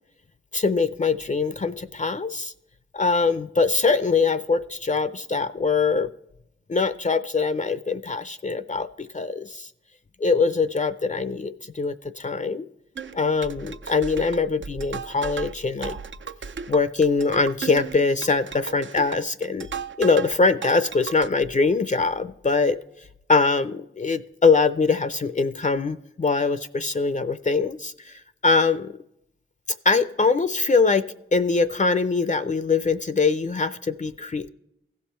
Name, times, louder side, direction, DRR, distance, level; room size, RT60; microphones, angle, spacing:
voice 1, 0.5-2.5 2.9-6.1 6.7-9.7 10.2-12.7 13.1-16.0 16.7-19.7 20.0-22.8 23.3-28.9 29.9-31.1 31.3-34.5, left 4 dB, 35° left, 12 dB, 0.4 m, -23 dB
sound 1, 13.0-20.4 20.6-21.3, right 6 dB, 65° right, 0.5 m, -35 dB
15.5 x 5.4 x 4.3 m, 0.82 s
cardioid pair, 50°, 21 cm